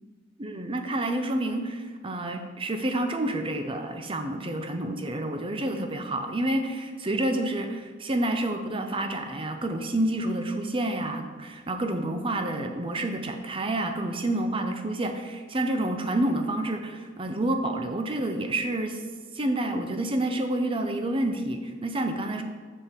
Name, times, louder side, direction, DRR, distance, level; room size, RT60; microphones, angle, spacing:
voice 1, 0.4-19.0 19.3-22.4, right 1 dB, 30° right, 6 dB, 0.6 m, -29 dB
7.9 x 6.4 x 3.6 m, 1.5 s
head